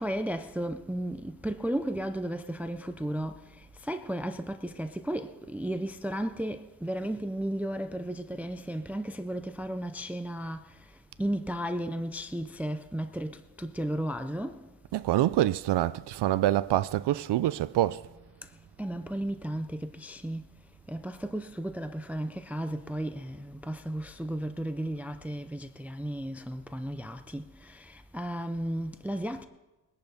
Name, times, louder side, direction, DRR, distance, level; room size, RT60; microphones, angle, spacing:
voice 1, 0.0-3.4 3.9-10.6 11.2-14.6 18.8-20.4 20.9-27.8 28.1-29.4, right 1 dB, 5° right, 0.5 m, -34 dB
voice 2, 14.9-18.0, right 14 dB, 70° right, 0.5 m, -26 dB
22.0 x 10.5 x 4.1 m
wide cardioid pair, 130°, 43 cm